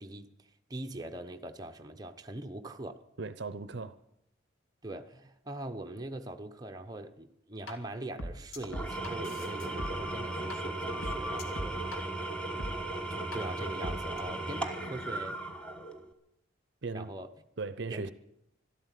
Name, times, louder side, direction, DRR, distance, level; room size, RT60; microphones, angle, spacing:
voice 1, 0.0-3.0 4.8-12.0 13.1-15.4 16.9-17.3 17.9-18.1, right 1 dB, 20° right, 0.7 m, -42 dB
voice 2, 3.2-4.0 16.8-17.1 17.6-18.1, right 3 dB, 55° right, 0.6 m, -37 dB
sound 1, 7.7-7.8 8.2-10.6 10.9-12.0 12.6-12.7 13.3-13.4 13.8-14.2, left 1 dB, 80° left, 2.1 m, -39 dB
Engine / Tools, 8.6-16.1, right 2 dB, 5° left, 1.1 m, -37 dB
13.0 x 12.5 x 8.2 m
head